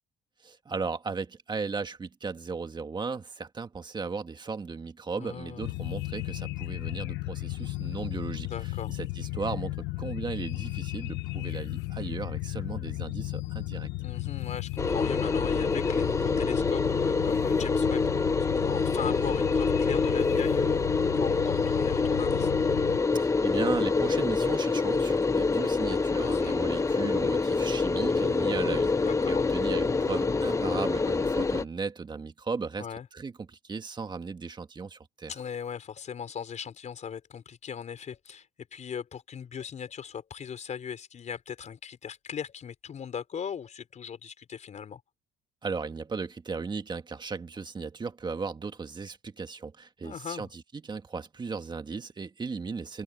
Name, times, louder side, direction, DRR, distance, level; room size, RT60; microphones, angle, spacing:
voice 1, 0.4-13.9 23.1-28.9 29.3-32.9 33.1-35.3 45.6-53.0, right 4 dB, 25° right, 1.9 m, -36 dB
voice 2, 5.2-5.7 8.4-8.9 14.0-18.0 18.5-22.5 26.2-26.6 29.0-29.5 32.8-33.0 35.3-45.0 50.0-50.5, left 7 dB, 45° left, 4.8 m, -39 dB
sound 1, 5.6-23.0, left 19 dB, 90° left, 1.1 m, -34 dB
sound 2, 14.8-31.6, left 4 dB, 20° left, 1.0 m, -26 dB
cardioid pair, 110°, 17 cm